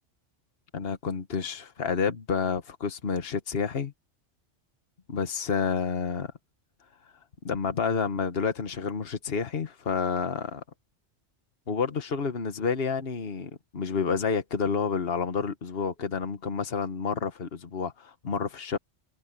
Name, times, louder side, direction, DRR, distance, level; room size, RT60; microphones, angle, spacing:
voice 1, 0.7-3.9 5.1-6.3 7.4-10.6 11.7-18.8, left 5 dB, 55° left, 1.6 m, -29 dB
omnidirectional pair, 1.2 m